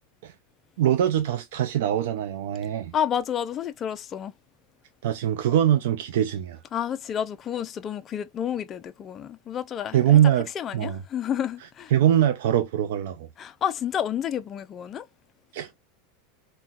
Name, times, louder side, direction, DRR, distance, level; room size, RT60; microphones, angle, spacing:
voice 1, 0.8-2.9 5.0-6.6 9.9-11.0 11.9-13.3 15.5-15.7, right 10 dB, 75° right, 0.4 m, -22 dB
voice 2, 2.9-4.3 6.7-10.2 10.6-11.9 13.4-15.1, left 9 dB, 25° left, 0.4 m, -30 dB
3.9 x 2.2 x 2.3 m
supercardioid pair, 150°, 0 cm